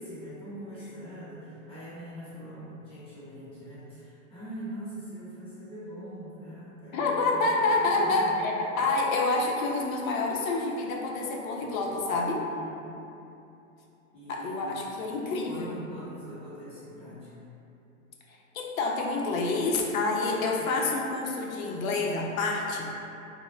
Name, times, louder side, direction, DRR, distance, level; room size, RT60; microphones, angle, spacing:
voice 1, 0.0-8.7 12.5-12.9 14.1-14.8 15.3-17.3 20.5-20.7, equal, 15° left, -11 dB, 0.7 m, -43 dB
voice 2, 6.9-12.4 14.3-15.8 18.3-22.9, left 3 dB, 75° left, -1 dB, 0.5 m, -28 dB
2.2 x 2.1 x 3.0 m, 2.8 s
hypercardioid pair, 130°, 41 cm